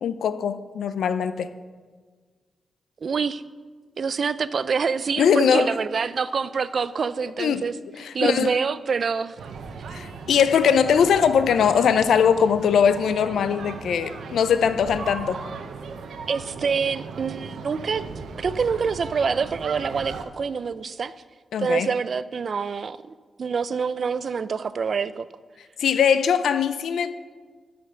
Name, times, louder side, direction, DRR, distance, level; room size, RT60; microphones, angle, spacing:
voice 1, 0.0-1.5 5.2-5.7 7.4-7.6 8.0-8.6 9.9-15.4 21.5-21.9 25.8-27.1, left 7 dB, 85° left, 13 dB, 0.5 m, -21 dB
voice 2, 3.0-3.4 4.0-7.7 8.1-9.4 16.3-18.0 18.4-21.1 21.6-25.3, right 5 dB, 60° right, 16 dB, 0.4 m, -26 dB
sound 1, 9.4-20.3, right 5 dB, 80° right, 0.7 m, -37 dB
10.5 x 5.1 x 5.9 m, 1.5 s
cardioid pair, 70°, 0 cm